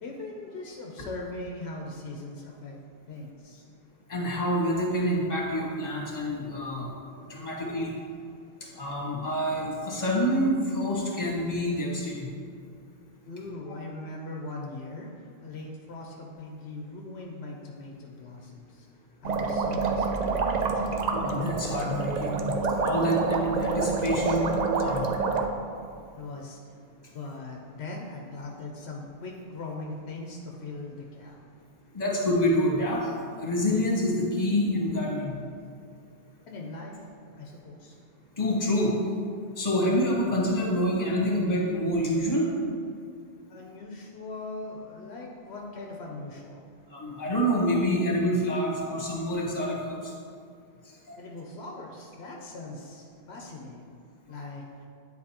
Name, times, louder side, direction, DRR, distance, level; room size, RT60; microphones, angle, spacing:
voice 1, 0.0-2.8 3.1-3.7 13.3-18.9 19.2-20.9 26.2-26.6 27.1-31.4 36.5-37.0 37.4-37.9 43.5-46.7 51.2-53.9 54.3-54.6, left 2 dB, 80° left, -1 dB, 1.0 m, -40 dB
voice 2, 4.1-7.9 8.6-12.3 21.1-25.1 31.9-33.1 33.4-35.4 38.4-39.0 39.5-42.5 46.9-50.1 51.1-51.2, equal, 40° left, -4 dB, 1.4 m, -27 dB
sound 1, 19.2-25.5, right 4 dB, 55° right, 0.5 m, -27 dB
9.6 x 4.1 x 2.9 m, 2.2 s
omnidirectional pair, 1.1 m